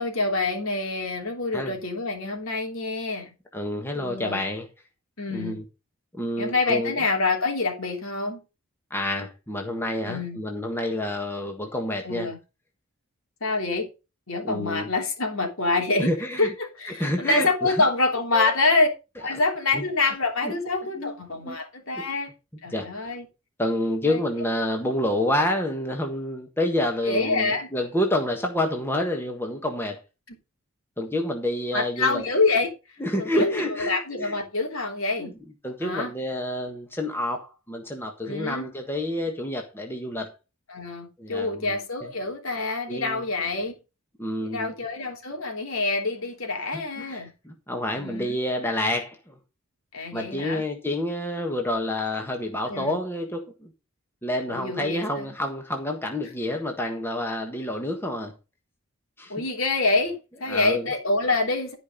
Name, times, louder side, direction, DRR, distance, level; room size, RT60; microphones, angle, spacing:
voice 1, 0.0-3.3 3.9-4.5 5.2-5.6 6.4-8.4 10.1-10.4 12.0-12.4 13.4-13.9 14.3-16.1 16.4-18.9 19.2-22.3 22.6-23.3 24.0-24.2 27.0-27.7 30.3-30.4 31.7-32.7 33.2-35.3 35.8-36.1 38.2-38.7 40.7-43.7 44.4-47.3 47.9-48.4 49.9-50.7 52.7-53.0 54.5-55.4 59.3-61.8, left 3 dB, 65° left, 3.3 m, -26 dB
voice 2, 3.5-4.6 5.3-5.6 6.1-6.9 8.9-12.3 14.4-14.9 16.0-16.5 17.0-17.7 18.3-18.5 19.7-19.8 20.4-20.6 21.0-21.1 21.4-21.6 22.0-22.1 22.7-22.9 23.6-30.0 31.0-32.2 33.0-34.3 35.2-35.3 35.6-40.3 41.2-41.7 42.9-43.2 44.2-44.7 46.7-47.2 47.4-49.3 50.1-53.7 54.2-58.3 59.2-59.3 60.5-60.8, left 1 dB, 10° left, 1.5 m, -28 dB
12.5 x 5.3 x 5.4 m
head